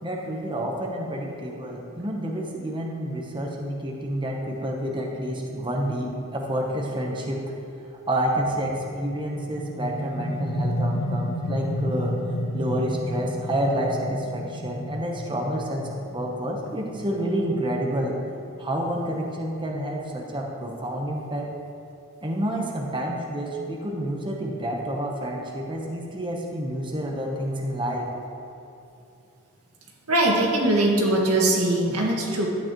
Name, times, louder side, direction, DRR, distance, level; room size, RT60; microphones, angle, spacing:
voice 1, 0.0-7.4 8.1-12.1 12.5-18.2 18.6-21.5 22.2-28.1, right 1 dB, 20° right, -1 dB, 0.9 m, -29 dB
sound 1, 8.7-20.2, equal, 55° left, 1.2 m, -32 dB
voice 2, 30.1-32.5, right 1 dB, 85° right, -2 dB, 1.8 m, -21 dB
11.5 x 9.0 x 3.0 m, 2.8 s
head